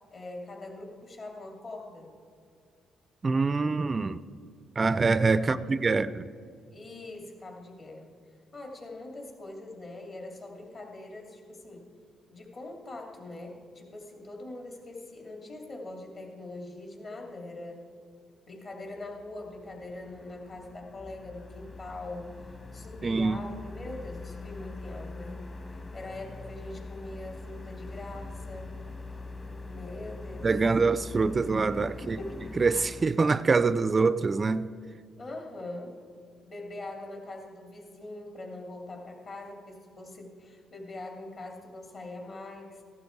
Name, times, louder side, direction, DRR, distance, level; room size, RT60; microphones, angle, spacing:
voice 1, 0.1-2.1 5.4-6.1 6.7-8.1 8.5-11.9 12.3-17.9 18.5-22.4 22.7-25.4 25.9-28.8 29.6-30.6 32.0-32.6 35.2-36.0 36.5-42.8, left 2 dB, 45° left, 2.7 m, -42 dB
voice 2, 3.2-4.2 4.8-6.1 23.0-23.4 30.4-32.2 32.6-34.7, right 4 dB, 30° right, 0.3 m, -25 dB
sound 1, 19.0-33.1, left 2 dB, 30° left, 1.6 m, -43 dB
15.0 x 11.5 x 4.7 m
cardioid pair, 90°, 0 cm